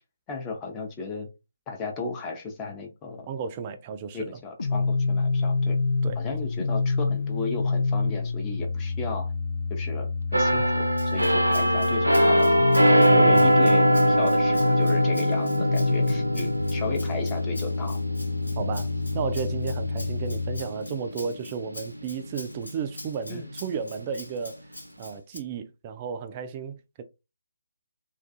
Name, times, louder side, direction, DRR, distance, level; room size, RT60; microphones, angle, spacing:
voice 1, 0.3-1.3 1.7-3.3 4.1-5.8 6.2-9.3 9.7-10.9 11.1-12.5 12.9-18.0 23.3-23.4, left 3 dB, 15° left, 0.6 m, -34 dB
voice 2, 3.3-4.4 6.0-6.2 13.1-13.6 18.6-24.6 25.0-27.0, right 6 dB, 25° right, 0.3 m, -33 dB
sound 1, 4.6-20.6, left 4 dB, 60° left, 0.3 m, -27 dB
sound 2, 10.3-21.9 22.3-22.5, right 1 dB, 90° right, 0.5 m, -23 dB
Rattle (instrument), 11.0-25.4, left 1 dB, 75° left, 1.2 m, -44 dB
2.3 x 2.3 x 2.5 m
figure-of-eight pair, 145°, 0 cm